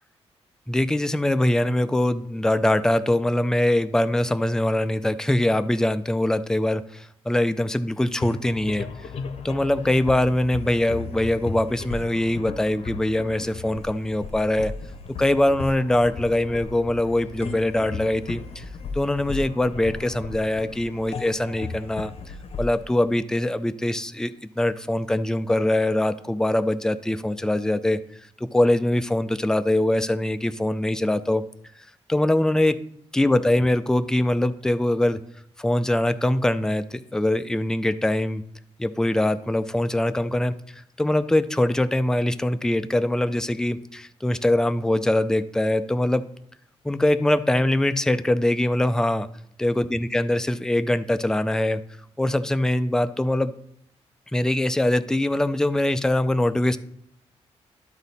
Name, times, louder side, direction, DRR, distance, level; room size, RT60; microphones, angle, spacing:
voice 1, 0.7-8.9 9.4-14.7 15.2-18.6 18.9-22.1 22.6-28.0 28.5-31.4 32.1-32.8 33.1-35.2 35.6-38.4 38.8-40.5 41.0-46.2 46.8-49.3 49.6-51.8 52.2-53.5 54.3-56.8, left 1 dB, 5° left, 11 dB, 0.4 m, -23 dB
sound 1, 8.2-23.8, left 4 dB, 60° left, 0.9 m, -36 dB
12.0 x 4.1 x 4.1 m, 0.70 s
cardioid pair, 80°, 12 cm